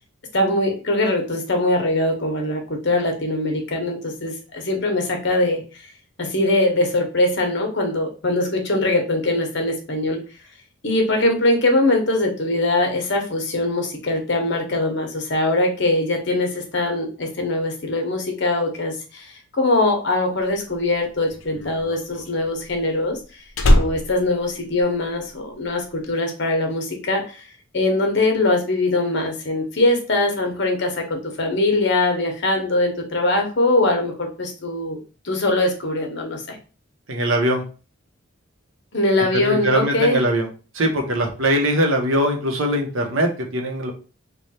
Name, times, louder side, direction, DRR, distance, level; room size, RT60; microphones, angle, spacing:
voice 1, 0.3-5.6 6.2-10.2 10.8-23.2 23.7-27.4 27.7-35.0 35.2-36.6 38.9-40.2, left 2 dB, 55° left, 2 dB, 0.9 m, -22 dB
Slam, 20.6-25.4 25.6-26.1, left 1 dB, 75° left, 0.6 m, -22 dB
voice 2, 37.1-37.7 39.3-40.5 40.7-43.9, right 1 dB, 70° right, 3 dB, 0.8 m, -21 dB
3.3 x 2.3 x 4.0 m, 0.35 s
head